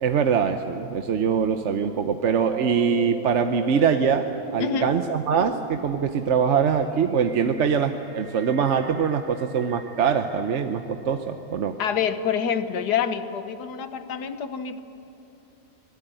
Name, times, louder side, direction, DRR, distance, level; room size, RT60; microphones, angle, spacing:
voice 1, 0.0-11.7, right 6 dB, 55° right, 7 dB, 1.0 m, -23 dB
sound 1, 2.2-11.2, right 6 dB, 30° right, 0.7 m, -39 dB
voice 2, 4.6-4.9 11.8-14.8, left 7 dB, 85° left, 11 dB, 1.6 m, -27 dB
25.0 x 19.0 x 9.0 m, 2.9 s
omnidirectional pair, 1.7 m